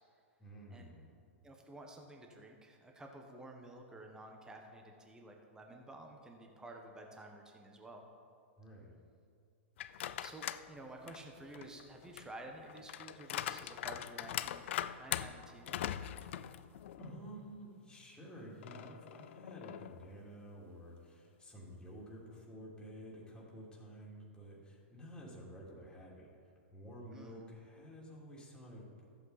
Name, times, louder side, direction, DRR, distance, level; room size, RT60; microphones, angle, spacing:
voice 1, 0.4-1.1 8.6-9.0 16.9-26.3 26.7-29.0, equal, 10° left, -5 dB, 2.9 m, -51 dB
voice 2, 1.4-8.0 10.2-14.7 15.0-16.0 27.1-27.4, right 2 dB, 10° right, 2 dB, 1.3 m, -52 dB
sound 1, 9.8-10.7 11.1-17.2 17.5-17.6 18.6-20.1, left 11 dB, 65° left, 0.4 m, -42 dB
14.0 x 8.1 x 4.3 m, 2.3 s
hypercardioid pair, 115°, 7 cm